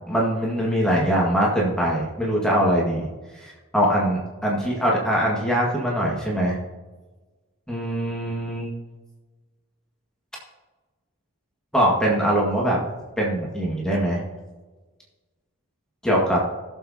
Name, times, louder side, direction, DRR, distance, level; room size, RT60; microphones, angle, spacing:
voice 1, 0.1-3.1 3.7-6.6 7.7-8.7 11.7-12.8 13.2-14.2 16.0-16.4, equal, 5° left, -4 dB, 1.8 m, -22 dB
17.5 x 7.3 x 2.9 m, 1.2 s
head